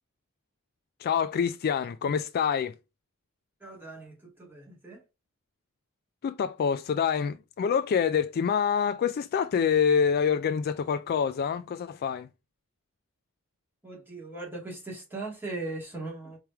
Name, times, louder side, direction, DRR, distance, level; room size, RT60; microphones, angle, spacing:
voice 1, 1.0-2.7 6.2-12.3, left 7 dB, 45° left, 0.3 m, -26 dB
voice 2, 3.6-5.0 13.8-16.4, right 2 dB, 10° right, 2.3 m, -39 dB
4.7 x 3.3 x 3.4 m
head